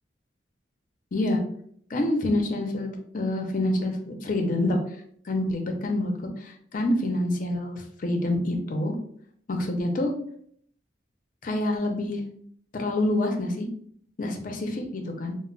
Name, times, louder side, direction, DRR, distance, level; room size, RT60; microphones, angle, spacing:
voice 1, 1.9-4.8 5.2-6.1 6.4-9.0 9.5-10.1 11.4-12.2 12.7-13.7 14.2-15.3, left 1 dB, 45° left, 3 dB, 0.5 m, -27 dB
2.1 x 2.0 x 3.7 m, 0.63 s
head